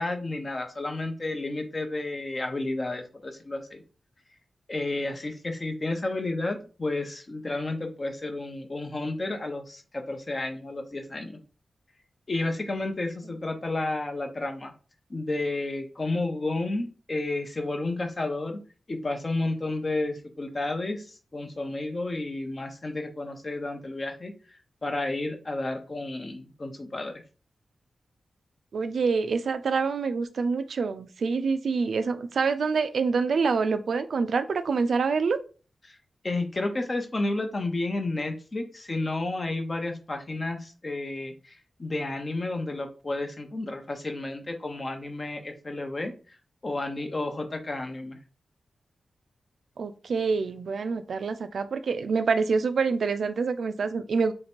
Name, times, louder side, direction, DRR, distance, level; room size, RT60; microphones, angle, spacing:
voice 1, 0.0-3.8 4.7-11.4 12.3-14.7 15.1-18.6 18.9-24.3 24.8-27.1 35.8-36.0 36.2-46.1 46.6-48.2, left 2 dB, 35° left, 0.7 m, -31 dB
voice 2, 28.7-35.4 49.8-54.3, right 5 dB, 80° right, 0.4 m, -26 dB
3.2 x 2.9 x 4.3 m
wide cardioid pair, 150°, 0 cm